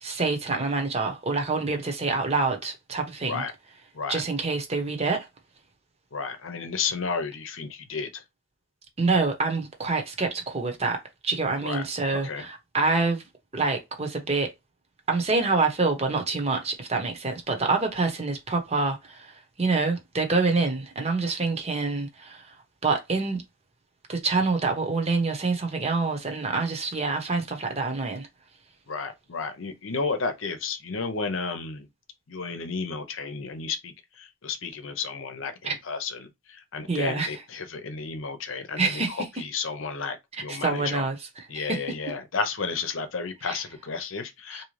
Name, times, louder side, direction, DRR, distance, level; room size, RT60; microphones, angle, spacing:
voice 1, 0.0-3.5 4.1-5.3 9.0-13.2 13.5-14.5 15.1-22.5 22.8-23.4 24.1-28.3 35.6-35.7 36.9-37.4 38.8-39.3 40.3-42.0 43.5-43.6 44.5-44.6, right 3 dB, 30° right, 0.9 m, -26 dB
voice 2, 6.1-8.2 11.6-11.8 12.2-12.5 28.9-31.9 32.3-41.1 41.5-44.6, left 4 dB, 75° left, 0.7 m, -32 dB
3.7 x 2.7 x 3.2 m
head